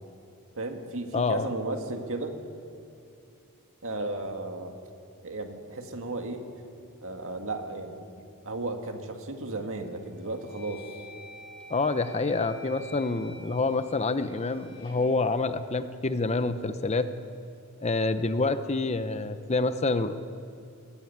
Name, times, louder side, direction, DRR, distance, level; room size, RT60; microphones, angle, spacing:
voice 1, 0.6-2.4 3.8-4.7 5.2-6.4 7.0-11.0, right 2 dB, 65° right, 4 dB, 2.0 m, -34 dB
voice 2, 1.1-1.5 11.7-17.1 17.8-20.1, left 3 dB, 30° left, 11 dB, 0.7 m, -27 dB
sound 1, 9.4-9.6 10.1-16.2, equal, 75° left, 5.2 m, -49 dB
20.5 x 14.0 x 9.4 m, 2.5 s
head